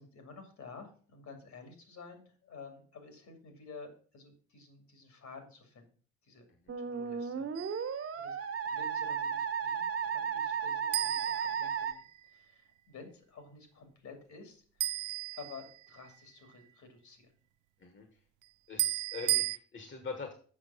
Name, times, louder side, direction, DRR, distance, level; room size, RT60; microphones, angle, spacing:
voice 1, 0.0-5.9 6.2-6.5 6.8-7.5 8.2-14.6 15.3-17.3, left 4 dB, 65° left, 6 dB, 2.6 m, -51 dB
Musical instrument, 6.7-11.9, right 7 dB, 50° right, 1.5 m, -34 dB
sound 1, 7.5-8.0 10.9-12.3 14.8-16.1 18.8-19.6, right 16 dB, 85° right, 0.5 m, -34 dB
voice 2, 18.7-20.3, left 4 dB, 40° left, 5 dB, 1.5 m, -43 dB
7.4 x 5.9 x 5.6 m, 0.43 s
cardioid pair, 90°, 30 cm